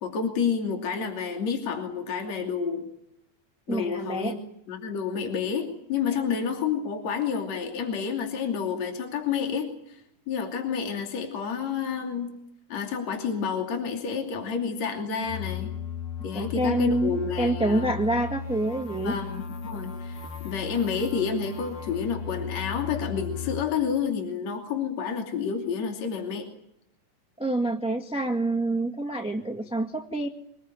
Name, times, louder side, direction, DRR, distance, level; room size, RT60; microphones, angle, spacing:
voice 1, 0.0-2.9 3.7-4.4 4.7-10.0 10.3-12.4 12.7-15.7 16.2-17.9 19.0-20.2 20.4-26.5, left 6 dB, 60° left, 3 dB, 4.0 m, -29 dB
voice 2, 3.7-4.3 16.3-19.1 27.4-30.3, right 2 dB, 5° right, 4 dB, 1.1 m, -27 dB
sound 1, 15.2-23.6, left 7 dB, 90° left, 4.6 m, -36 dB
24.5 x 20.5 x 9.1 m, 0.76 s
omnidirectional pair, 3.5 m